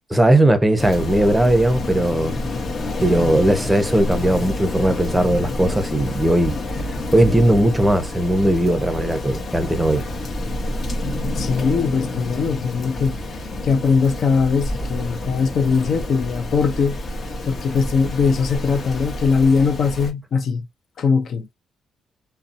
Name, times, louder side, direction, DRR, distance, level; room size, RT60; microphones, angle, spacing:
voice 1, 0.1-2.3 3.0-6.5 7.1-10.0, right 1 dB, 10° right, 0.7 m, -18 dB
Rain, 0.8-20.1, left 1 dB, 40° left, 1.0 m, -28 dB
voice 2, 11.4-13.2 13.6-17.0 17.5-20.6 21.0-21.5, left 5 dB, 60° left, 0.6 m, -20 dB
2.6 x 2.1 x 2.5 m
cardioid pair, 90°, 0 cm